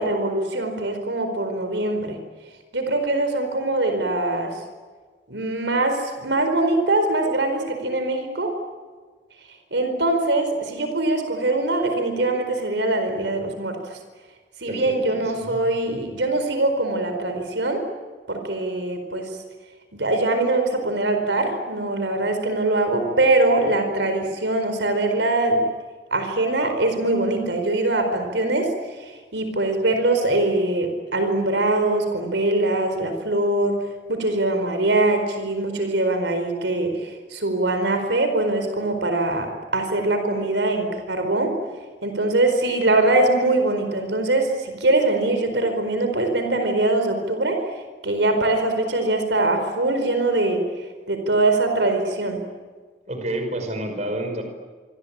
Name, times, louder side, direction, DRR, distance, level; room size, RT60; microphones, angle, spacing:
voice 1, 0.0-2.2 2.7-4.6 5.3-8.5 9.7-14.0 14.6-17.8 18.3-19.3 19.9-25.6 26.1-28.7 29.0-33.8 34.1-41.6 42.0-47.6 48.0-50.6 51.1-52.4, right 2 dB, 80° right, 6 dB, 4.6 m, -22 dB
voice 2, 14.6-15.6 53.1-54.4, right 1 dB, 40° right, 5 dB, 5.3 m, -29 dB
26.0 x 25.5 x 8.8 m, 1.5 s
head